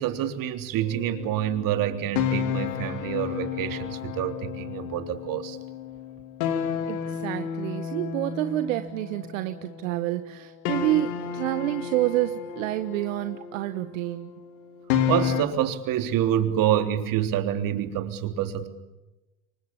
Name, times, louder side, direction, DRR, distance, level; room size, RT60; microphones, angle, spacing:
voice 1, 0.0-5.6 15.1-18.7, right 11 dB, 60° right, 7 dB, 3.5 m, -27 dB
sound 1, 0.8-10.0 10.6-15.4, left 8 dB, 75° left, 3.0 m, -32 dB
voice 2, 6.9-14.3, right 15 dB, 80° right, 9 dB, 1.4 m, -28 dB
28.5 x 24.5 x 7.1 m, 1.0 s
supercardioid pair, 90°, 38 cm